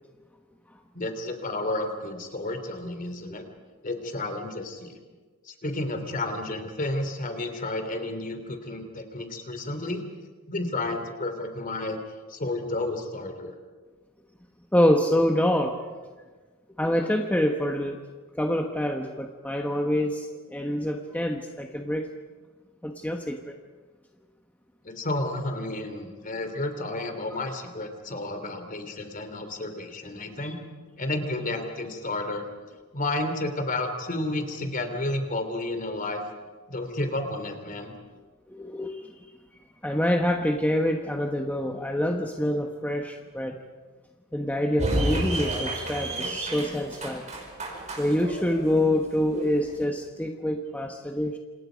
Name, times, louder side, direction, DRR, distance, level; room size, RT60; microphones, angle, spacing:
voice 1, 0.9-3.4 3.8-5.0 5.4-10.0 10.5-12.0 12.3-13.5 24.8-30.6 31.0-32.5 32.9-36.2 36.7-37.9, left 2 dB, 40° left, 7 dB, 3.2 m, -31 dB
voice 2, 14.7-15.8 16.8-18.0 18.3-22.1 22.8-23.6 30.4-30.5 38.5-39.3 39.8-43.6 44.3-47.3 48.0-51.4, left 1 dB, 5° left, 3 dB, 1.2 m, -26 dB
sound 1, 44.8-49.8, right 1 dB, 30° right, 5.5 m, -31 dB
28.0 x 28.0 x 5.2 m, 1.4 s
head